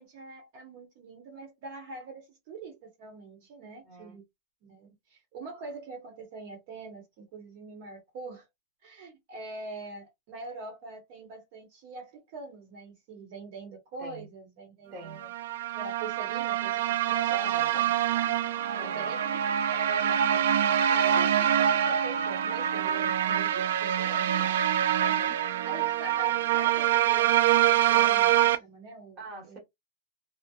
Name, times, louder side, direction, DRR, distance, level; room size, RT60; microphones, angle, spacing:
voice 1, 0.0-4.2 4.6-8.5 8.8-15.3 15.7-18.4 18.7-24.6 25.6-29.2 29.5-29.6, right 3 dB, 45° right, 0.9 m, -44 dB
voice 2, 3.8-4.2 14.0-14.3 14.9-15.3 17.3-17.8 18.8-19.2 20.9-21.3 24.2-24.6 25.0-25.4 29.2-29.6, right 2 dB, 20° right, 1.1 m, -45 dB
sound 1, 15.2-28.6, right 10 dB, 80° right, 0.3 m, -25 dB
2.8 x 2.1 x 2.2 m
supercardioid pair, 175°, 0 cm